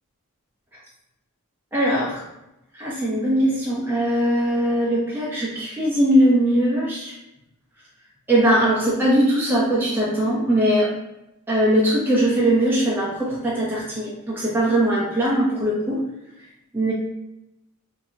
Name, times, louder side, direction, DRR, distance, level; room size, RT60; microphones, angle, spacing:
voice 1, 1.7-2.2 2.7-7.1 8.3-10.9 11.5-16.0 16.7-16.9, right 1 dB, 10° right, -7 dB, 0.8 m, -20 dB
4.6 x 2.8 x 2.8 m, 0.89 s
head